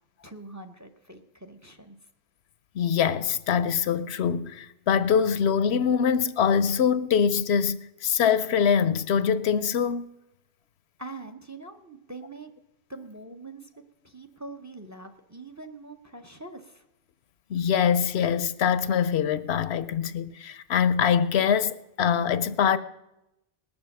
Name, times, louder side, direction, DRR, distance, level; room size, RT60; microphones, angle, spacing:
voice 1, 0.2-2.0 11.0-12.5 12.9-13.7 14.0-16.8, right 2 dB, 20° right, 0.7 m, -43 dB
voice 2, 2.7-10.1 17.5-22.8, left 7 dB, 75° left, 0.9 m, -24 dB
19.5 x 7.1 x 6.5 m
omnidirectional pair, 1.1 m